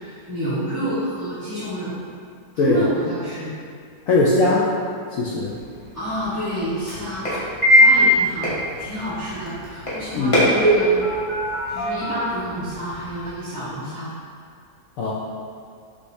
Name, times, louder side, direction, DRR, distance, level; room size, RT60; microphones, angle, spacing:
voice 1, 0.0-2.0 2.5-3.5 5.9-7.3 7.7-8.5 8.8-10.9 11.7-14.1, equal, 10° right, -18 dB, 1.2 m, -29 dB
voice 2, 4.1-4.7 5.1-5.5 10.1-10.4 15.0-15.1, left 2 dB, 70° left, -5 dB, 0.8 m, -19 dB
sound 1, 5.4-13.3, equal, 25° left, 0.9 m, -22 dB
5.3 x 3.2 x 2.7 m, 2.2 s
omnidirectional pair, 1.8 m